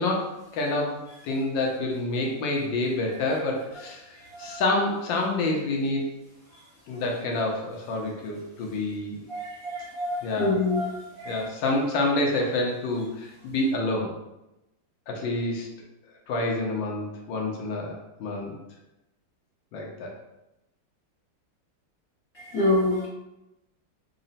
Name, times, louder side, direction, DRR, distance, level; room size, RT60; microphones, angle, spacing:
voice 1, 0.0-6.1 6.9-9.2 10.2-10.6 11.2-14.1 15.1-15.7 16.3-18.6 19.7-20.1, left 2 dB, 75° left, 0 dB, 1.4 m, -28 dB
voice 2, 9.3-10.9 11.2-11.4 22.3-23.1, left 2 dB, 50° left, -9 dB, 1.2 m, -26 dB
4.0 x 2.1 x 3.9 m, 0.93 s
omnidirectional pair, 2.2 m